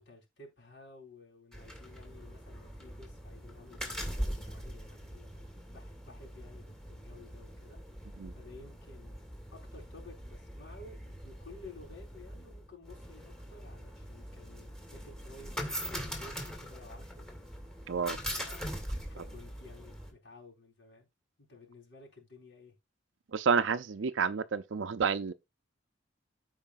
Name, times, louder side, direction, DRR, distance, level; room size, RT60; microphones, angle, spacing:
voice 1, 0.0-17.2 18.1-21.1 21.4-22.7, left 3 dB, 65° left, 4.0 m, -54 dB
sound 1, 1.5-20.1, equal, 5° left, 2.1 m, -42 dB
voice 2, 17.9-18.2 23.3-25.3, right 6 dB, 70° right, 0.5 m, -29 dB
14.5 x 4.9 x 2.5 m
head